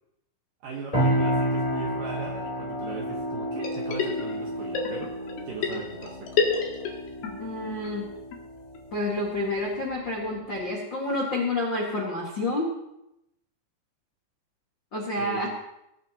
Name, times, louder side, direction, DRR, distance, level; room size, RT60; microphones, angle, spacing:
voice 1, 0.6-5.1 5.5-6.6 15.2-15.5, right 5 dB, 65° right, -1 dB, 2.1 m, -39 dB
sound 1, 0.9-10.7, equal, 10° left, 2.9 m, -31 dB
sound 2, 3.6-4.5 4.7-7.3 7.6-7.7 7.8-7.9 8.3-8.4 8.7-8.8 9.0-9.1 9.5-9.6, left 5 dB, 60° left, 3.4 m, -29 dB
voice 2, 7.4-8.1 8.9-12.7 14.9-15.5, left 2 dB, 90° left, -2 dB, 1.0 m, -29 dB
18.0 x 12.5 x 3.0 m, 0.84 s
omnidirectional pair, 5.7 m